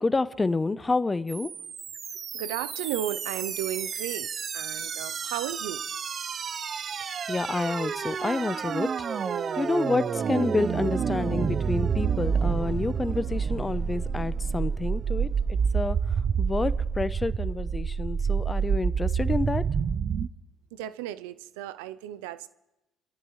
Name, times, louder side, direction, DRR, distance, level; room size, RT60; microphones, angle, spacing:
voice 1, 0.0-1.5 7.3-8.9 9.6-16.0 16.4-19.7, left 3 dB, 20° left, 0.7 m, -29 dB
sound 1, 1.3-20.3, right 6 dB, 45° right, 0.6 m, -29 dB
voice 2, 2.3-5.8 20.7-22.5, right 12 dB, 90° right, 0.5 m, -34 dB
28.0 x 15.0 x 3.2 m
supercardioid pair, 75°, 0 cm